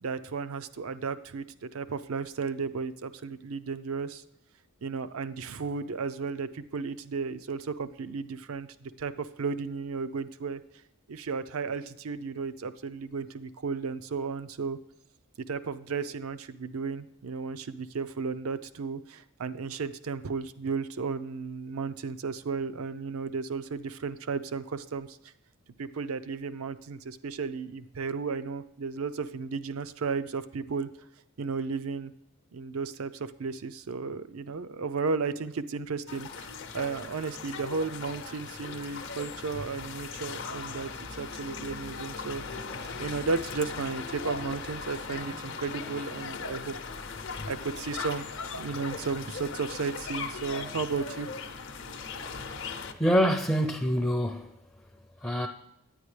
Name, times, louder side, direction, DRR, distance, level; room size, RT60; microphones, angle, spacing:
voice 1, 0.0-4.2 4.8-10.6 11.1-14.8 15.5-25.2 25.8-30.9 31.4-32.1 32.5-42.4 43.0-46.7 47.5-48.3 48.6-51.3, right 5 dB, 75° right, 0.5 m, -34 dB
sound 1, 36.1-52.9, left 5 dB, 60° left, 0.7 m, -38 dB
voice 2, 52.0-52.5 53.0-54.5 55.2-55.5, equal, 10° left, 0.5 m, -26 dB
9.7 x 9.4 x 3.2 m
head